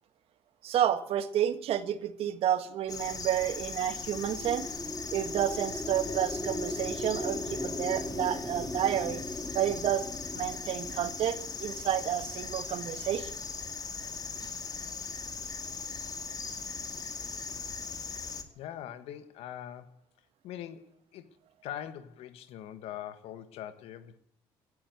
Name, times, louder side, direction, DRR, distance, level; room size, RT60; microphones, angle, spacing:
voice 1, 0.6-4.7 5.1-9.2 9.5-10.1 10.3-13.3, right 10 dB, 70° right, 1.7 m, -30 dB
sound 1, 2.9-18.4, left 5 dB, 35° left, 2.4 m, -39 dB
sound 2, 3.9-12.4, left 1 dB, 10° left, 3.5 m, -39 dB
voice 2, 18.6-20.0 20.4-21.2 21.6-24.2, left 11 dB, 80° left, 1.6 m, -42 dB
16.5 x 10.0 x 8.2 m
supercardioid pair, 80°, 10 cm